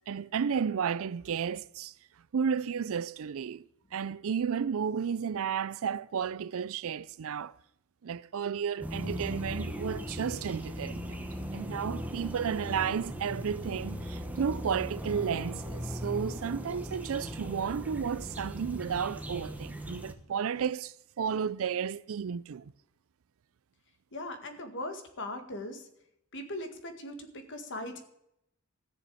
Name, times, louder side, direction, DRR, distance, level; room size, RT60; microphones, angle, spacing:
voice 1, 0.1-1.9 2.3-3.6 3.9-7.5 8.0-11.2 11.5-22.7, right 7 dB, 65° right, 0.4 m, -32 dB
sound 1, 8.8-20.1, equal, 5° right, 1.2 m, -38 dB
voice 2, 24.1-25.9 26.3-28.0, left 1 dB, 55° left, 1.9 m, -39 dB
14.5 x 6.9 x 8.5 m
head